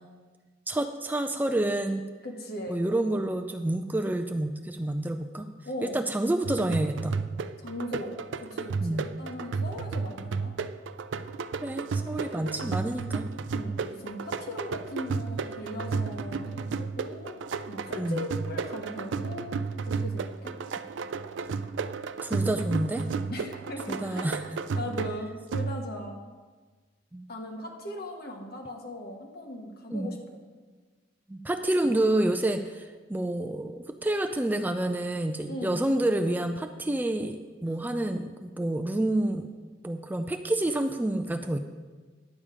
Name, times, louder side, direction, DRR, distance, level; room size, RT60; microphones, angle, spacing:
voice 1, 0.7-2.0 2.7-5.5 5.8-7.2 8.8-9.1 11.6-13.3 17.9-18.3 22.2-23.0 23.9-24.6 27.1-27.3 29.9-30.1 31.3-39.5 39.8-41.6, right 1 dB, 10° right, 6 dB, 0.4 m, -28 dB
voice 2, 2.2-2.8 5.6-6.0 7.6-8.2 8.5-10.5 11.9-12.7 13.5-17.3 17.7-19.5 19.9-20.6 23.3-24.4 24.7-26.2 27.3-30.4 35.5-35.9 37.7-37.8, left 1 dB, 60° left, 2 dB, 1.4 m, -39 dB
sound 1, 6.4-26.1, right 4 dB, 80° right, 0.4 m, -33 dB
10.5 x 7.3 x 4.9 m, 1.4 s
head